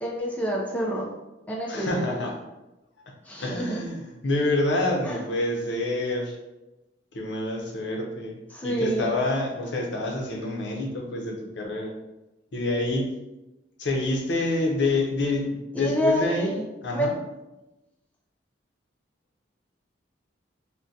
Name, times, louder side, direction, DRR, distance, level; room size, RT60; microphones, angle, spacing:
voice 1, 0.0-1.1 1.5-1.9 3.3-3.8 5.0-5.2 8.5-9.1 15.8-16.6 16.9-17.1, equal, 10° left, -3 dB, 0.4 m, -27 dB
voice 2, 1.7-2.4 3.4-6.4 7.1-12.0 12.5-13.2 13.8-16.5 16.8-17.1, left 2 dB, 70° left, 0 dB, 0.6 m, -27 dB
3.6 x 2.1 x 2.6 m, 1.0 s
head